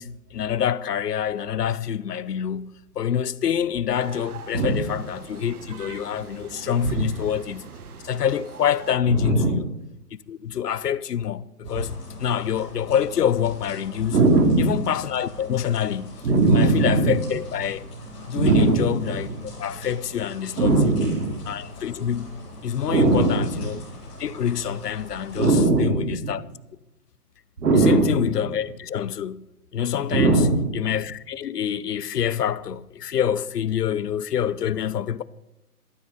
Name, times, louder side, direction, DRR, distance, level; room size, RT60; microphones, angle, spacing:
voice 1, 0.0-7.7 8.0-9.6 10.3-14.2 14.6-16.2 16.5-17.9 18.3-19.3 19.6-21.0 21.5-23.8 24.2-26.4 27.7-29.4 29.7-30.4 30.7-35.2, left 9 dB, 85° left, 0.8 m, -26 dB
sound 1, 3.9-8.9, right 6 dB, 70° right, 1.5 m, -42 dB
voice 2, 4.5-4.8 6.8-7.1 9.1-9.6 11.7-11.8 14.1-14.7 16.2-17.3 18.3-19.4 20.6-21.4 22.9-23.8 25.3-26.4 27.6-28.3 30.1-30.7, right 3 dB, 85° right, 2.8 m, -20 dB
sound 2, 11.6-25.6, left 1 dB, 10° left, 4.3 m, -41 dB
13.0 x 12.5 x 4.1 m
hypercardioid pair, 170°, 46 cm